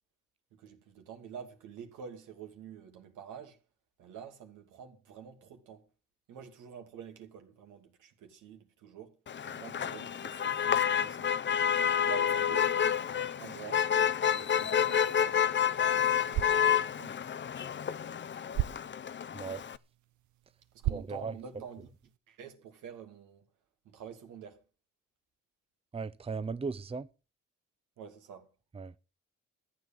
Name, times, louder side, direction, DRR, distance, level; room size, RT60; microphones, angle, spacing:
voice 1, 0.5-3.6 4.0-5.9 6.3-9.2 9.4-11.4 12.0-13.9 14.2-17.3 20.7-21.9 22.3-23.5 23.8-24.6 28.0-28.5, right 7 dB, 90° right, 2.6 m, -48 dB
Motor vehicle (road), 9.3-19.8, left 8 dB, 40° left, 0.7 m, -29 dB
sound 1, 16.1-22.2, right 14 dB, 75° right, 0.8 m, -40 dB
voice 2, 19.3-19.6 20.9-21.3 25.9-27.1 28.7-28.9, right 4 dB, 20° right, 0.7 m, -37 dB
14.5 x 7.9 x 7.1 m
cardioid pair, 90°, 30 cm